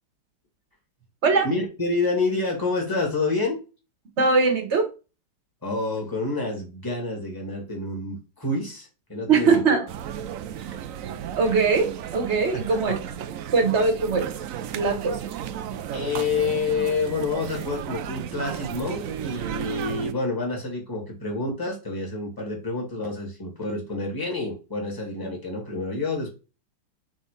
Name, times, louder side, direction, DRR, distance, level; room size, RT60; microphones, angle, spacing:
voice 1, 1.4-3.6 5.6-9.6 12.5-13.0 15.9-26.3, left 3 dB, 10° left, -1 dB, 2.2 m, -28 dB
voice 2, 4.2-4.9 9.3-9.9 11.4-13.0 13.5-14.3 14.7-15.2, right 4 dB, 40° right, 5 dB, 1.4 m, -21 dB
sound 1, 9.9-20.1, right 9 dB, 80° right, 0.7 m, -34 dB
4.6 x 4.0 x 5.1 m, 0.31 s
omnidirectional pair, 2.1 m